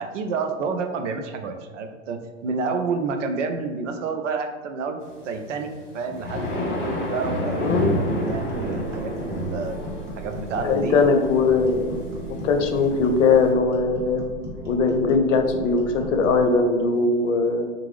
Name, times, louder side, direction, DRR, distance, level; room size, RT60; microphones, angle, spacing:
voice 1, 0.0-5.0 5.2-7.7 8.2-9.8 10.2-11.0, right 4 dB, 70° right, 6 dB, 0.7 m, -29 dB
sound 1, 5.5-13.5, equal, 30° left, 1.2 m, -30 dB
sound 2, 7.0-16.3, right 3 dB, 5° left, 1.0 m, -42 dB
sound 3, 8.2-16.5, equal, 30° right, 1.3 m, -38 dB
voice 2, 10.6-12.0 12.3-14.2 14.7-17.7, left 4 dB, 70° left, 5 dB, 0.7 m, -20 dB
4.6 x 2.5 x 3.2 m, 1.4 s
hypercardioid pair, 105°, 39 cm